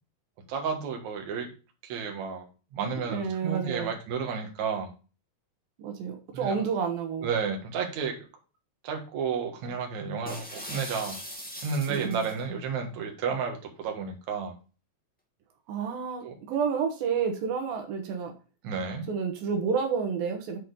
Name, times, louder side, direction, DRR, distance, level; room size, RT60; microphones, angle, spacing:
voice 1, 0.5-1.5 1.8-2.5 2.7-4.9 6.3-6.6 7.2-8.2 8.8-11.2 11.6-14.6 16.2-16.3 18.6-19.0, right 6 dB, 60° right, 2 dB, 2.6 m, -32 dB
voice 2, 3.1-3.9 5.8-7.3 11.9-12.3 15.7-18.3 19.1-20.6, right 6 dB, 85° right, 3 dB, 2.9 m, -30 dB
sound 1, 10.3-12.4, equal, 5° left, 0.6 m, -40 dB
8.2 x 4.4 x 4.0 m, 0.33 s
omnidirectional pair, 4.1 m